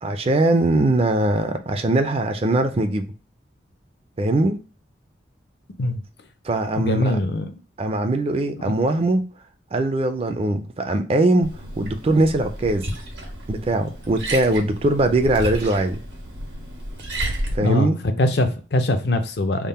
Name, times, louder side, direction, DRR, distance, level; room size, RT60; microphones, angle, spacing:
voice 1, 0.0-3.1 4.2-4.6 6.4-7.2 7.8-9.2 9.7-11.5 11.8-12.9 13.5-16.0 17.5-18.0, right 2 dB, 30° right, 0.4 m, -21 dB
voice 2, 6.8-7.5 8.6-8.8 17.6-19.7, left 1 dB, 60° left, 0.5 m, -22 dB
Liquid, 11.4-17.6, right 1 dB, 85° right, 1.4 m, -31 dB
3.6 x 2.1 x 4.2 m
head